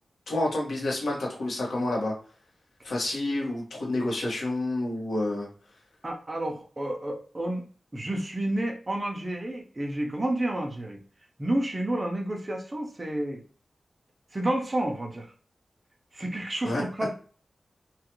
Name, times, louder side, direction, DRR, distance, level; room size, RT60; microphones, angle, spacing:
voice 1, 0.3-2.1 2.8-5.5 16.6-16.8, left 1 dB, 90° left, -3 dB, 1.3 m, -29 dB
voice 2, 6.0-7.6 7.9-11.0 11.4-13.4 14.3-15.3 16.1-17.1, right 1 dB, 25° right, 1 dB, 0.6 m, -30 dB
2.9 x 2.4 x 3.0 m, 0.41 s
wide cardioid pair, 130°, 0 cm